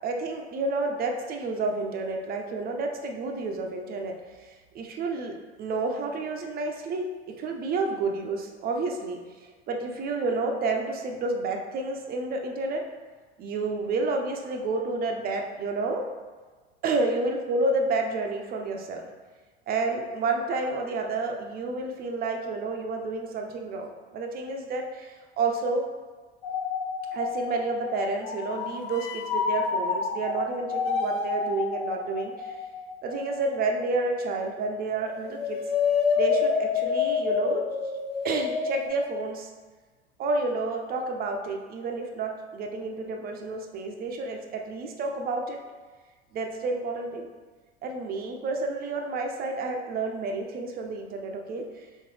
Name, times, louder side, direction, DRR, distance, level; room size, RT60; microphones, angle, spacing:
voice 1, 0.0-12.8 13.4-16.1 16.8-19.1 19.7-25.8 27.1-32.6 33.0-35.6 36.2-37.6 38.2-39.5 40.2-45.6 46.3-47.3 47.8-51.9, right 3 dB, 25° right, 2 dB, 0.6 m, -30 dB
sound 1, 26.4-34.7 35.0-38.9, left 6 dB, 50° left, 0.6 m, -29 dB
3.8 x 3.7 x 3.3 m, 1.4 s
figure-of-eight pair, 75°, 34 cm